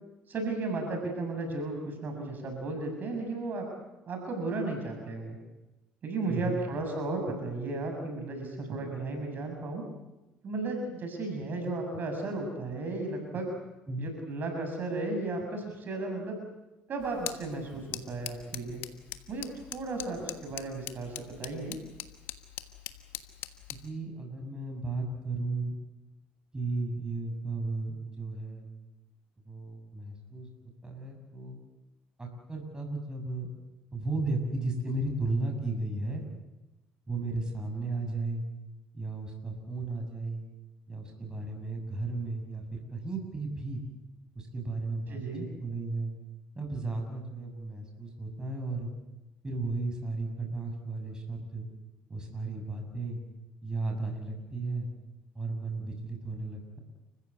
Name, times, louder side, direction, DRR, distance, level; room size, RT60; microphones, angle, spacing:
voice 1, 0.3-3.7 4.1-5.4 6.0-9.9 10.4-13.5 14.0-16.4 16.9-18.8 19.3-19.5 19.7-21.8 45.1-45.5, right 2 dB, 50° right, 4 dB, 6.8 m, -34 dB
voice 2, 6.3-6.6 13.9-14.1 23.7-25.7 26.5-28.7 29.4-30.5 30.8-31.6 32.2-33.5 33.9-36.2 37.1-38.4 38.9-40.4 40.9-43.8 44.4-45.2 45.6-46.1 46.6-48.9 49.4-51.7 52.1-53.2 53.6-54.9 55.3-56.8, right 3 dB, 20° right, 2 dB, 7.0 m, -34 dB
sound 1, 17.0-23.9, left 14 dB, 75° left, 1.4 m, -43 dB
30.0 x 15.5 x 8.4 m, 1.0 s
supercardioid pair, 70°, 4 cm